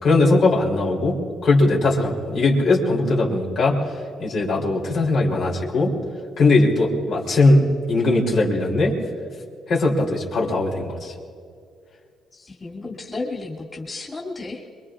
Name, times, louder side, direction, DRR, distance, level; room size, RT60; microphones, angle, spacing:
voice 1, 0.0-1.2 1.4-3.8 4.2-5.9 6.4-9.0 9.7-11.1, left 2 dB, 65° left, -2 dB, 3.3 m, -19 dB
voice 2, 12.3-14.6, left 3 dB, 25° left, -4 dB, 2.6 m, -33 dB
25.5 x 22.5 x 2.5 m, 2.2 s
cardioid pair, 90°, 0 cm